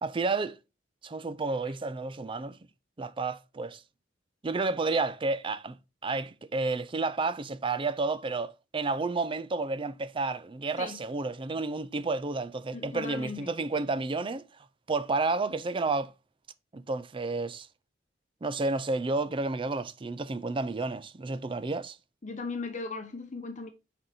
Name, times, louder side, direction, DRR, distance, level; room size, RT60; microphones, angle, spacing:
voice 1, 0.0-0.6 1.0-2.6 3.0-3.8 4.4-5.8 6.0-14.4 14.9-16.1 16.7-17.7 18.4-22.0, right 3 dB, 30° right, 0.5 m, -31 dB
voice 2, 12.7-13.5 22.2-23.7, left 3 dB, 40° left, 0.8 m, -37 dB
6.4 x 4.4 x 4.0 m
head